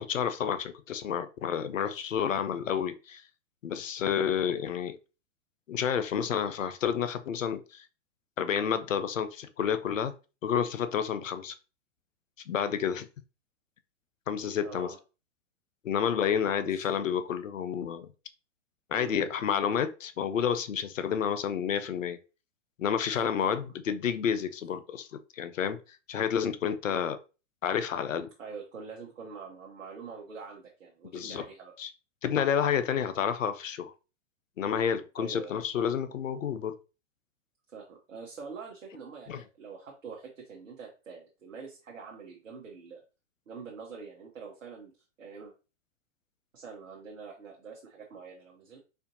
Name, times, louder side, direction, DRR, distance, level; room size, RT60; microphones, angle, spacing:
voice 1, 0.0-3.2 3.6-5.0 5.7-7.8 8.4-10.1 10.4-11.6 12.5-13.1 14.3-14.9 15.8-18.1 18.9-22.2 22.8-25.8 26.1-27.2 27.6-28.3 31.1-31.5 31.8-31.9 32.2-33.9 34.6-36.8 39.3-39.4, left 8 dB, 85° left, 0.5 m, -30 dB
voice 2, 14.6-15.0 16.6-17.0 18.9-19.2 23.1-23.5 28.4-31.7 35.2-35.6 37.7-43.0 43.5-44.9 45.2-45.5 46.5-48.8, right 5 dB, 80° right, 0.9 m, -45 dB
4.3 x 2.6 x 2.6 m
figure-of-eight pair, 105°, 38 cm